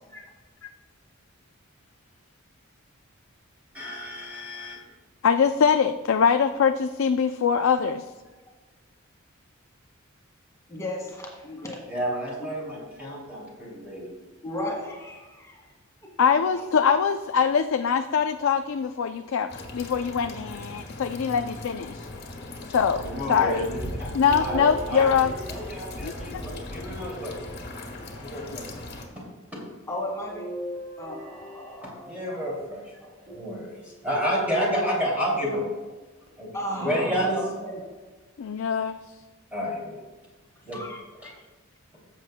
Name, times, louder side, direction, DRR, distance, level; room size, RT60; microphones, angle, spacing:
voice 1, 3.7-4.8 11.9-14.1 23.0-24.1 24.4-27.3 28.2-28.6 29.1-29.2 29.5-29.6 31.8-35.7 36.4-37.4 39.5-40.0 40.6-40.8 41.2-41.3, equal, 5° right, -5 dB, 2.5 m, -30 dB
voice 2, 5.2-8.0 16.2-22.1 22.7-23.0 23.3-23.7 24.1-25.3 26.0-26.4 28.5-28.6 38.4-39.0, left 6 dB, 65° left, 7 dB, 0.4 m, -23 dB
voice 3, 10.7-11.8 12.4-12.5 14.4-15.6 16.2-16.7 29.9-30.5 31.0-32.4 33.0-33.1 36.5-37.8 40.7-41.3, left 1 dB, 15° left, -2 dB, 2.0 m, -35 dB
sound 1, 19.5-29.1, left 1 dB, 50° left, 1.6 m, -38 dB
sound 2, 24.3-26.5 27.3-28.3 30.3-32.3 33.3-34.1 34.8-34.9 36.3-36.4, equal, 50° right, 2.4 m, -41 dB
15.0 x 7.4 x 2.2 m, 1.3 s
head